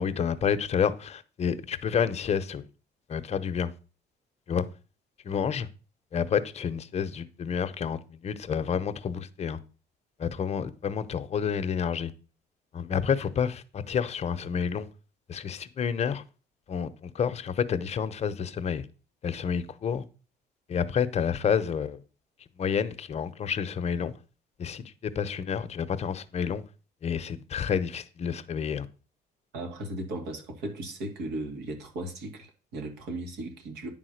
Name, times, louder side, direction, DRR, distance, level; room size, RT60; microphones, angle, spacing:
voice 1, 0.0-2.7 3.1-3.7 4.5-4.7 5.2-5.7 6.1-9.6 10.2-12.1 12.7-14.9 15.3-16.2 16.7-18.8 19.2-20.0 20.7-22.0 22.6-24.1 24.6-26.6 27.0-28.9, left 7 dB, 40° left, 0.8 m, -29 dB
voice 2, 29.5-33.9, right 1 dB, 80° right, 2.3 m, -36 dB
10.0 x 3.8 x 6.4 m
cardioid pair, 110°, 17 cm